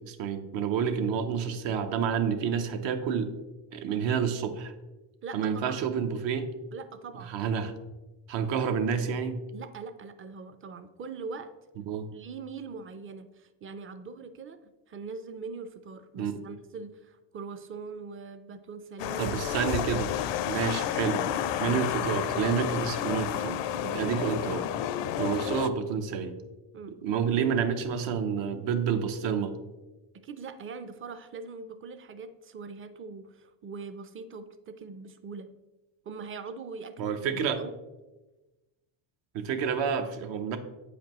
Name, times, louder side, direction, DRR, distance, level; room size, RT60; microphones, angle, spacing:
voice 1, 0.0-3.3 3.7-4.7 5.3-6.5 7.2-7.7 8.3-9.4 11.9-12.1 16.2-16.3 19.2-20.1 20.5-21.3 21.6-23.6 23.8-24.7 25.2-26.3 27.0-29.5 37.0-37.6 39.3-40.6, right 7 dB, 65° right, 8 dB, 0.9 m, -29 dB
voice 2, 5.2-5.8 6.7-7.3 9.5-11.5 12.1-19.4 24.0-24.2 26.7-26.9 30.2-35.5 36.1-37.8, right 4 dB, 30° right, 10 dB, 0.5 m, -42 dB
sound 1, 19.0-25.7, left 10 dB, 65° left, 0.5 m, -31 dB
8.1 x 5.0 x 3.0 m, 1.1 s
cardioid pair, 105°, 48 cm